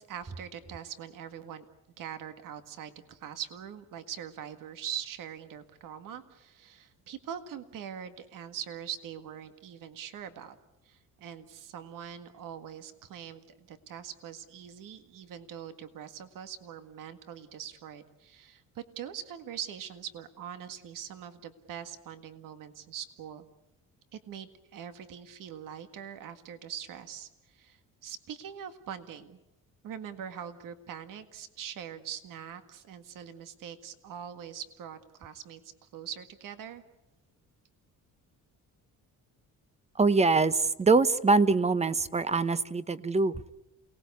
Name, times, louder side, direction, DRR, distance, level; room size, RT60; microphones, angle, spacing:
voice 1, 0.0-1.6 2.0-10.6 10.8-23.4 24.1-29.4 29.8-35.6 35.9-36.8, right 9 dB, 70° right, 9 dB, 1.9 m, -42 dB
voice 2, 40.0-43.4, right 3 dB, 20° right, 14 dB, 0.9 m, -24 dB
28.5 x 19.0 x 8.4 m, 0.92 s
cardioid pair, 125°, 34 cm